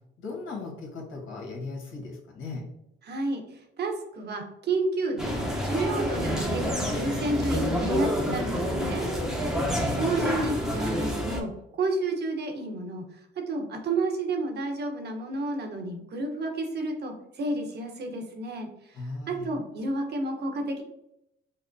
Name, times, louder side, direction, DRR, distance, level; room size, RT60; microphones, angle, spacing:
voice 1, 0.2-2.7 9.6-10.0 18.9-19.5, left 3 dB, 80° left, -1 dB, 1.2 m, -37 dB
voice 2, 3.0-9.0 10.0-11.5 11.8-13.2 13.5-19.0 19.3-20.8, right 2 dB, 55° right, 3 dB, 1.0 m, -31 dB
sound 1, 5.2-11.4, equal, 5° right, 0.8 m, -28 dB
5.5 x 2.1 x 2.6 m, 0.81 s
cardioid pair, 90°, 20 cm